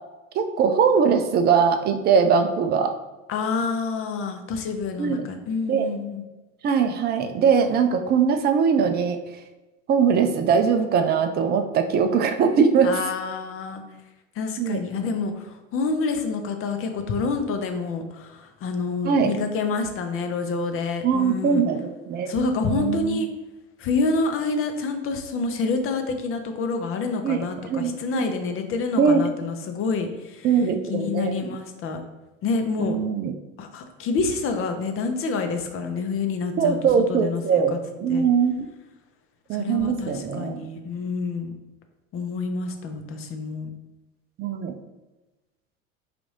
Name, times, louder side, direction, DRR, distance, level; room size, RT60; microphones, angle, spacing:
voice 1, 0.3-2.9 5.0-5.3 5.7-5.9 6.6-9.2 9.9-12.9 14.6-14.8 19.0-19.3 21.0-22.3 22.7-23.2 27.2-28.3 28.9-29.2 30.4-31.5 32.8-33.3 36.6-38.5 39.5-40.6 44.4-44.8, right 6 dB, 25° right, 7 dB, 0.4 m, -21 dB
voice 2, 3.3-6.2 12.8-13.8 14.3-21.6 22.3-23.3 23.8-30.5 30.9-32.0 32.4-33.0 33.6-36.8 37.1-37.8 38.1-38.3 39.5-41.5 42.1-43.7, left 4 dB, 35° left, 6 dB, 0.6 m, -27 dB
4.8 x 2.5 x 3.2 m, 1.1 s
hypercardioid pair, 80°, 38 cm